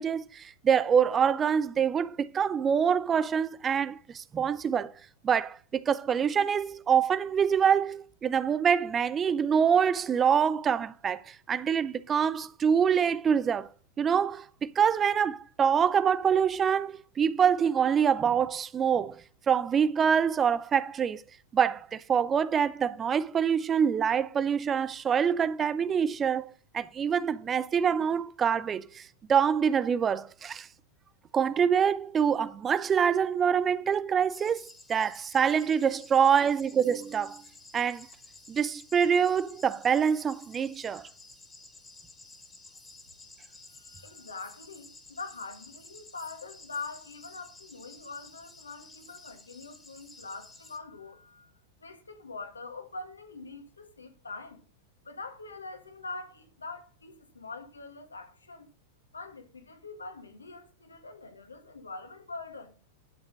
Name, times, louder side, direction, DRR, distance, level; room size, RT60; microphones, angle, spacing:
voice 1, 0.0-4.9 5.2-13.7 14.0-19.2 19.5-21.2 21.5-30.7 31.3-37.4 37.7-38.1 38.5-41.1, right 7 dB, 20° right, 0.5 m, -25 dB
sound 1, 34.3-50.8, left 3 dB, 10° left, 2.3 m, -52 dB
voice 2, 43.7-51.5 51.8-54.6 55.0-58.7 59.1-62.7, left 3 dB, 75° left, 1.9 m, -43 dB
11.5 x 7.2 x 5.2 m
figure-of-eight pair, 90°, 0 cm